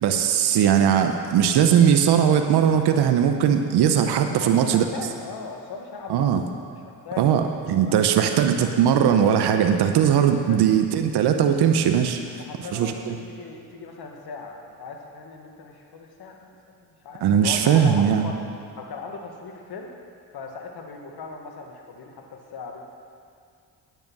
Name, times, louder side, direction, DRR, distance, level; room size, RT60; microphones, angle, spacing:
voice 1, 0.0-4.8 6.1-6.4 7.2-12.2 12.7-13.1 17.2-18.3, right 8 dB, 70° right, 6 dB, 0.9 m, -19 dB
voice 2, 4.3-6.3 6.6-8.9 10.2-10.6 12.2-18.4 18.8-20.0 20.3-22.8, left 4 dB, 60° left, 2 dB, 1.6 m, -39 dB
9.2 x 7.9 x 6.1 m, 2.3 s
supercardioid pair, 60°, 42 cm